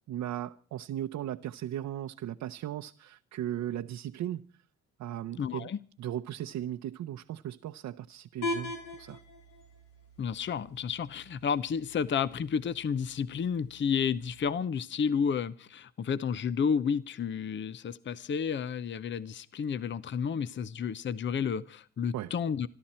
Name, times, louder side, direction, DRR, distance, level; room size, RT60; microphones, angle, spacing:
voice 1, 0.1-4.5 5.0-5.7 6.0-9.2 22.1-22.3, right 12 dB, 70° right, 0.8 m, -37 dB
voice 2, 5.4-5.8 10.2-22.7, left 6 dB, 40° left, 0.7 m, -31 dB
sound 1, 8.4-14.4, left 2 dB, 85° left, 5.8 m, -42 dB
26.5 x 12.0 x 4.3 m
cardioid pair, 90°, 30 cm